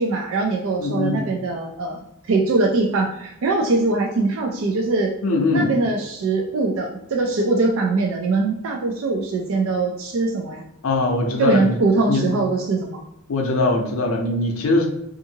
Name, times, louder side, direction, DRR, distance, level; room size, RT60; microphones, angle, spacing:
voice 1, 0.0-5.1 5.5-10.6 11.4-13.0, right 3 dB, 70° right, 1 dB, 0.4 m, -22 dB
voice 2, 0.8-1.2 5.2-5.7 10.8-11.8 12.1-12.3 13.3-14.9, left 2 dB, 80° left, 2 dB, 0.5 m, -21 dB
2.6 x 2.5 x 2.7 m, 0.80 s
head